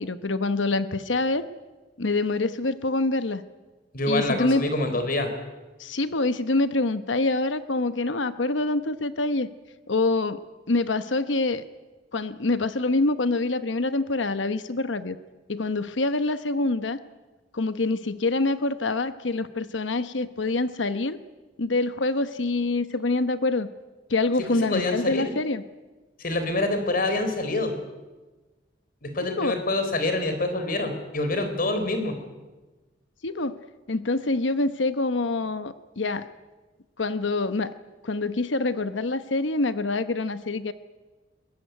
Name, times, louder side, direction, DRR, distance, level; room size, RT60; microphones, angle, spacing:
voice 1, 0.0-1.5 2.0-3.4 4.1-4.7 5.8-9.5 9.9-10.4 10.7-11.6 12.1-15.2 15.5-17.0 17.5-21.2 21.6-23.7 24.1-25.6 29.3-29.6 33.2-33.6 33.9-36.3 37.0-37.7 38.0-40.7, left 2 dB, 90° left, 12 dB, 1.0 m, -25 dB
voice 2, 3.9-5.3 24.5-25.3 26.2-27.7 29.0-32.2, left 2 dB, 50° left, 7 dB, 3.9 m, -26 dB
23.0 x 20.5 x 9.3 m, 1.2 s
head